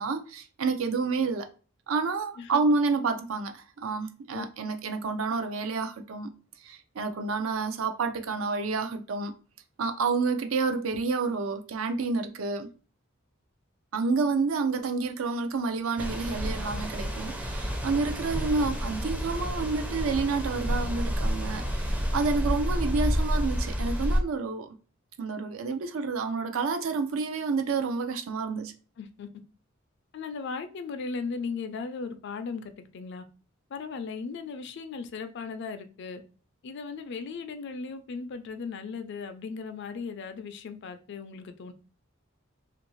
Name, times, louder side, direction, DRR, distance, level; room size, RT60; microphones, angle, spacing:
voice 1, 0.0-1.5 1.9-6.3 6.6-9.3 9.8-12.7 13.9-24.7 25.2-28.7, right 4 dB, 75° right, 0.5 m, -29 dB
sound 1, 16.0-24.2, equal, 5° right, 0.4 m, -29 dB
voice 2, 29.0-29.3 30.1-33.2 33.7-36.2 36.6-41.7, left 5 dB, 55° left, 0.4 m, -37 dB
2.7 x 2.5 x 3.0 m
head